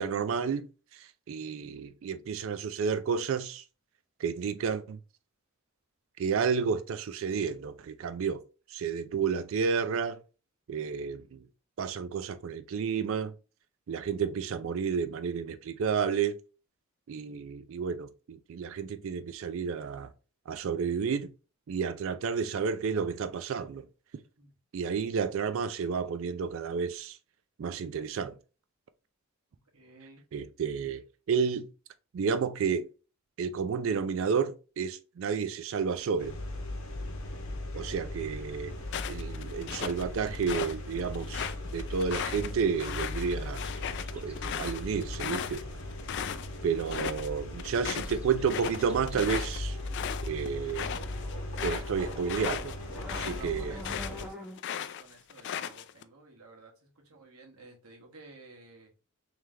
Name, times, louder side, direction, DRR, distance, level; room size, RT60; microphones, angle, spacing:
voice 1, 0.0-3.6 4.2-5.0 6.2-8.4 8.7-10.2 10.7-11.4 11.8-13.3 13.9-16.4 17.1-20.1 20.5-21.3 21.7-23.9 24.7-27.2 27.6-28.4 30.3-31.0 31.3-31.7 32.1-32.9 33.4-36.4 37.7-38.7 39.1-43.6 44.1-45.7 46.6-49.8 50.2-50.9 51.6-52.8 53.2-53.8, right 6 dB, 60° right, 0.3 m, -31 dB
voice 2, 29.5-30.2 36.9-37.3 46.8-47.0 47.4-47.7 52.9-54.5 55.0-58.9, right 3 dB, 80° right, 1.3 m, -52 dB
sound 1, 36.2-54.3, left 1 dB, 70° left, 0.9 m, -38 dB
sound 2, 38.9-40.8 41.1-46.5 46.8-47.3 47.6-54.2 54.6-56.0, left 9 dB, 55° left, 0.3 m, -37 dB
sound 3, 43.6-44.6 47.7-54.6, left 1 dB, 5° right, 0.6 m, -49 dB
3.2 x 3.2 x 3.6 m
head